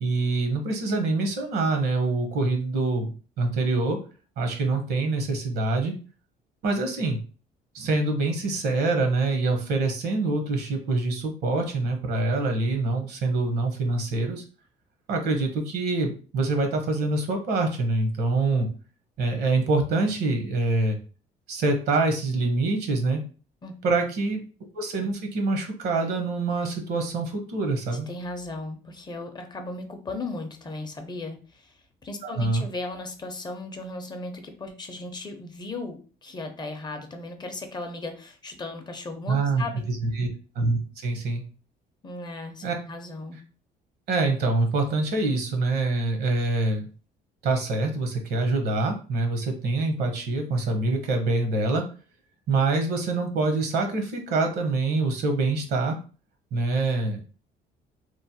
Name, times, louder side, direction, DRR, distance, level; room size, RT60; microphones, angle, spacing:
voice 1, 0.0-4.0 4.4-5.9 6.6-7.2 7.7-14.4 15.1-18.7 19.2-21.0 21.5-23.2 23.8-24.4 24.7-28.1 32.2-32.7 39.3-40.3 40.5-41.4 42.6-42.7 44.1-46.9 47.4-51.9 52.5-56.0 56.5-57.2, right 3 dB, 70° right, 5 dB, 0.8 m, -25 dB
voice 2, 28.1-31.7 32.0-39.9 42.0-43.4, left 2 dB, 25° left, 5 dB, 0.5 m, -36 dB
3.0 x 2.1 x 2.7 m, 0.37 s
cardioid pair, 110°, 17 cm